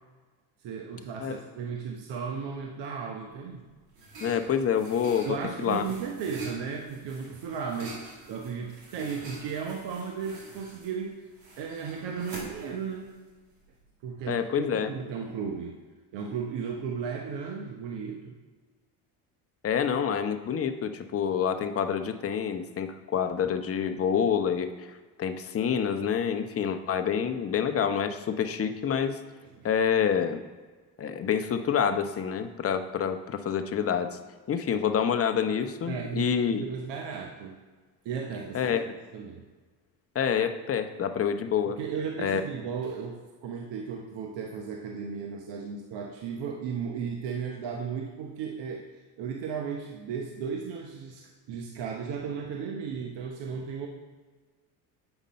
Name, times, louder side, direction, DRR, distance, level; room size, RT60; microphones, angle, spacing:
voice 1, 0.6-3.6 5.3-8.0 8.3-11.1 11.6-13.1 14.0-15.8 16.1-18.4 29.4-29.7 35.9-37.6 38.0-38.7 39.1-39.4 41.7-48.9 49.2-53.9, right 6 dB, 60° right, 2 dB, 1.0 m, -35 dB
sound 1, 3.3-13.9, right 2 dB, 85° right, 2.0 m, -45 dB
voice 2, 4.2-5.4 5.6-5.8 14.3-14.9 19.6-29.2 29.6-30.4 31.0-34.2 34.5-36.6 38.5-38.9 40.1-41.8 42.2-42.4, left 7 dB, 30° left, 8 dB, 0.7 m, -27 dB
8.1 x 5.2 x 4.2 m, 1.3 s
hypercardioid pair, 65°, 48 cm